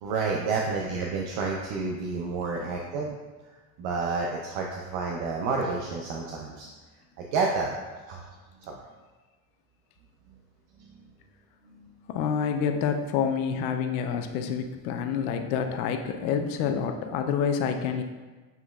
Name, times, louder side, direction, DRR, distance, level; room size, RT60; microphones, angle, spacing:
voice 1, 0.0-3.1 3.8-6.7 7.2-7.7 8.1-8.2 8.6-8.8 10.8-10.9 11.7-11.9, right 4 dB, 75° right, -1 dB, 0.7 m, -30 dB
voice 2, 12.1-18.0, left 7 dB, 80° left, 6 dB, 0.6 m, -28 dB
6.8 x 3.0 x 2.3 m, 1.3 s
cardioid pair, 140°, 43 cm